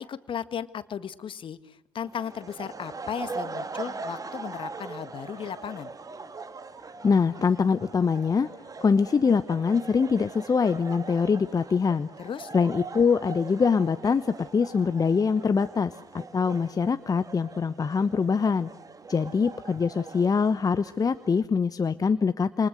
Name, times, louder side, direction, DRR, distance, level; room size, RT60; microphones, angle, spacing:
voice 1, 0.0-5.9 12.2-12.5, left 8 dB, 45° left, 13 dB, 1.7 m, -36 dB
sound 1, 2.0-21.4, right 4 dB, 30° right, 2.1 m, -41 dB
voice 2, 7.0-8.5 8.8-12.1 12.5-18.7 19.1-22.7, left 5 dB, 30° left, 12 dB, 1.0 m, -24 dB
28.5 x 27.5 x 6.4 m, 0.86 s
hypercardioid pair, 50°, 12 cm